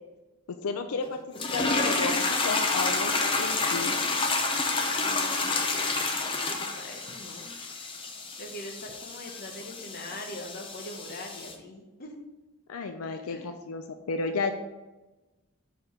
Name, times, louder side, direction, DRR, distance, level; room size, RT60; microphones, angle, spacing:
voice 1, 0.5-1.2 1.5-4.3 12.7-14.5, left 4 dB, 85° left, 7 dB, 0.5 m, -33 dB
sound 1, 1.3-11.5, left 3 dB, 25° left, 0.6 m, -29 dB
voice 2, 3.4-4.1 5.0-8.0 8.4-12.2 13.1-13.5, left 1 dB, 45° left, 3 dB, 1.0 m, -43 dB
5.1 x 4.7 x 5.6 m, 1.1 s
head